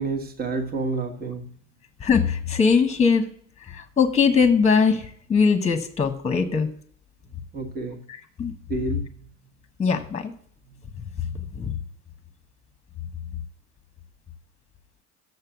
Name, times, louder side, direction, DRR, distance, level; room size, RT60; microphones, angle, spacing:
voice 1, 0.0-1.5 7.5-8.0 8.7-9.3 10.7-10.8, right 3 dB, 30° right, 3 dB, 1.4 m, -29 dB
voice 2, 2.0-3.2 3.7-6.7 8.4-8.5 9.8-10.3 11.6-11.7, left 5 dB, 20° left, 8 dB, 1.1 m, -21 dB
6.7 x 6.6 x 7.1 m, 0.62 s
supercardioid pair, 90°, 33 cm